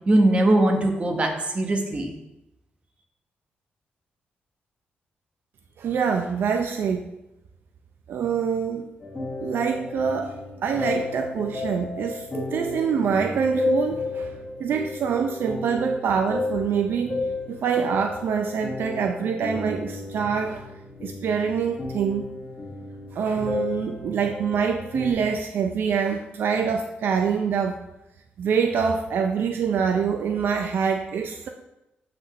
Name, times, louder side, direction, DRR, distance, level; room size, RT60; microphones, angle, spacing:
voice 1, 0.1-2.1, right 1 dB, 35° right, 3 dB, 1.1 m, -21 dB
voice 2, 5.8-7.1 8.1-8.9 9.4-12.3 12.5-14.3 14.6-17.1 17.5-20.7 21.0-22.3 23.1-27.8 28.4-31.5, right 6 dB, 70° right, 5 dB, 0.5 m, -25 dB
sound 1, 9.0-25.1, left 3 dB, 20° left, 1.8 m, -33 dB
7.6 x 5.8 x 3.1 m, 0.90 s
cardioid pair, 100°, 4 cm